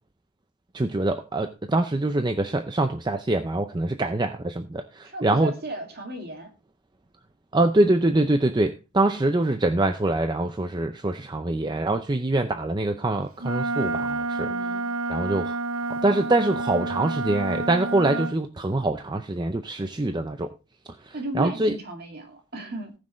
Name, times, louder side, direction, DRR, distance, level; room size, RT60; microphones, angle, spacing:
voice 1, 0.7-5.5 7.5-14.5 15.1-15.6 15.9-20.5 21.0-21.7, right 2 dB, 20° right, 0.5 m, -24 dB
voice 2, 5.0-6.5 14.4-14.9 21.1-22.9, right 2 dB, 45° right, 2.3 m, -35 dB
Wind instrument woodwind instrument, 13.4-18.3, right 3 dB, 75° right, 0.7 m, -29 dB
18.5 x 6.2 x 3.1 m
head